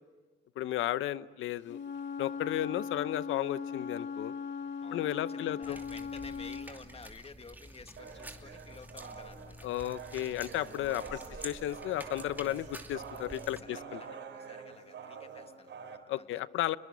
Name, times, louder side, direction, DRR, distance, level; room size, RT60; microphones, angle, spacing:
voice 1, 0.6-1.8 2.2-4.3 4.9-5.8 9.6-14.0 16.1-16.8, left 13 dB, 80° left, 16 dB, 0.8 m, -34 dB
Wind instrument woodwind instrument, 1.6-6.7, left 5 dB, 65° left, 2.0 m, -39 dB
voice 2, 2.7-3.0 4.8-9.7 11.0-11.5 13.4-16.3, left 4 dB, 30° left, 9 dB, 1.7 m, -52 dB
sound 1, 5.6-13.6, right 1 dB, 10° right, 2.7 m, -49 dB
sound 2, 8.0-16.0, right 6 dB, 65° right, 4.4 m, -47 dB
30.0 x 22.5 x 8.4 m, 1.4 s
cardioid pair, 90°, 20 cm